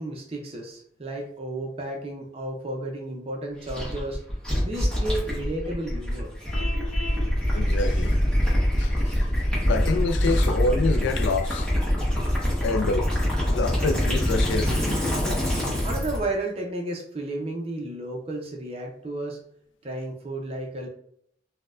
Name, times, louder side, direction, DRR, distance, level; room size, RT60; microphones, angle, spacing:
voice 1, 0.0-4.2 4.6-6.3 15.8-19.4 19.8-20.9, right 1 dB, 30° right, 0.5 m, -32 dB
Gurgling / Liquid, 3.7-16.2, equal, 5° left, 1.0 m, -24 dB
Vehicle horn car horn honking, 6.5-7.3, left 2 dB, 40° left, 1.2 m, -35 dB
voice 2, 7.5-8.3 8.8-9.3 9.7-11.7 12.6-13.1 13.5-15.0, left 3 dB, 80° left, 0.3 m, -27 dB
4.2 x 2.1 x 2.4 m
head